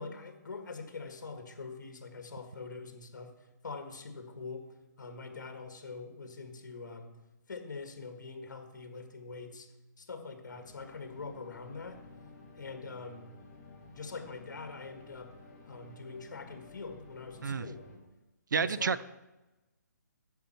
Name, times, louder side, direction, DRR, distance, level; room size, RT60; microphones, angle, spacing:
voice 1, 0.0-4.7 5.0-7.2 7.5-9.7 10.0-12.0 12.6-13.3 13.9-15.4 15.7-17.8 18.5-19.0, left 4 dB, 70° left, 5 dB, 1.8 m, -44 dB
sound 1, 10.5-18.0, left 3 dB, 20° left, 2.1 m, -53 dB
voice 2, 18.5-19.0, right 6 dB, 80° right, 17 dB, 0.4 m, -30 dB
10.5 x 7.4 x 4.4 m, 1.0 s
hypercardioid pair, 155°, 10 cm